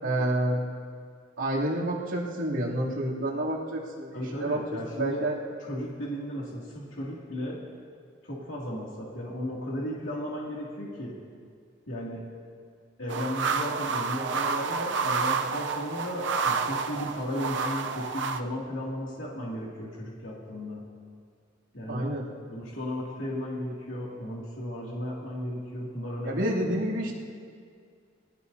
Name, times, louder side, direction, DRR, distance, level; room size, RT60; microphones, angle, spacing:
voice 1, 0.0-0.6 1.4-4.1 4.4-4.6 5.0-5.4 21.9-22.3 26.2-27.2, right 1 dB, 85° right, -6 dB, 2.9 m, -28 dB
voice 2, 4.1-5.2 5.6-7.6 8.2-11.2 11.9-12.3 13.0-20.9 21.7-22.1 22.5-26.4, equal, 80° left, -5 dB, 2.5 m, -35 dB
sound 1, 13.1-18.4, right 5 dB, 65° right, 0.6 m, -29 dB
22.5 x 17.5 x 2.7 m, 2.1 s
head